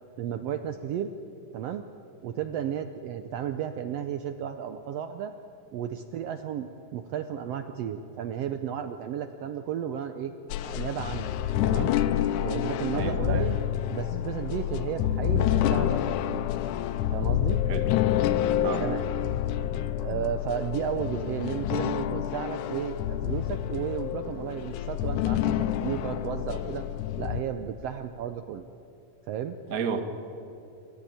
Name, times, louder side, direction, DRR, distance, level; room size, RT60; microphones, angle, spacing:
voice 1, 0.2-1.1 1.5-1.8 2.2-5.3 5.7-10.3 10.6-11.9 12.4-13.6 13.9-16.4 17.1-17.6 18.8-19.0 20.0-26.9 27.2-28.6 29.3-29.6, right 9 dB, 85° right, 8 dB, 1.4 m, -33 dB
sound 1, 10.5-27.4, left 11 dB, 75° left, 2.0 m, -28 dB
voice 2, 12.9-13.5 17.7-17.9 18.6-18.8 29.7-30.0, right 6 dB, 45° right, 6 dB, 1.1 m, -31 dB
27.5 x 14.5 x 9.3 m, 2.8 s
omnidirectional pair, 3.9 m